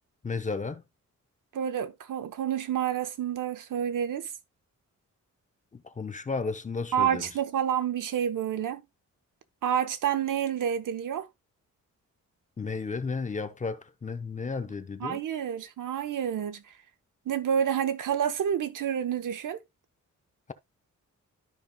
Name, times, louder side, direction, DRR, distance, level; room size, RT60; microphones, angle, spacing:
voice 1, 0.2-0.8 5.7-7.3 12.6-15.2, left 4 dB, 25° left, 0.6 m, -33 dB
voice 2, 1.5-4.3 6.9-8.8 9.6-11.3 15.0-16.6 17.3-19.6, right 9 dB, 80° right, 1.0 m, -29 dB
12.5 x 5.3 x 2.2 m
wide cardioid pair, 175°, 31 cm